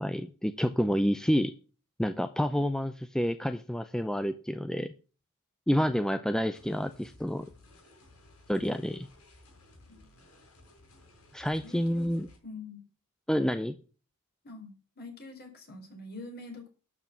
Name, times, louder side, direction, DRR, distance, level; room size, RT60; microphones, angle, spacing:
voice 1, 0.0-1.5 2.0-4.9 5.7-7.4 8.5-9.1 11.3-12.3 13.3-13.8, equal, 5° left, 11 dB, 0.5 m, -29 dB
sound 1, 6.5-12.4, left 2 dB, 85° left, 4.9 m, -57 dB
voice 2, 11.6-12.8 14.4-16.7, left 3 dB, 45° left, 3 dB, 4.5 m, -45 dB
12.5 x 6.2 x 7.3 m, 0.37 s
head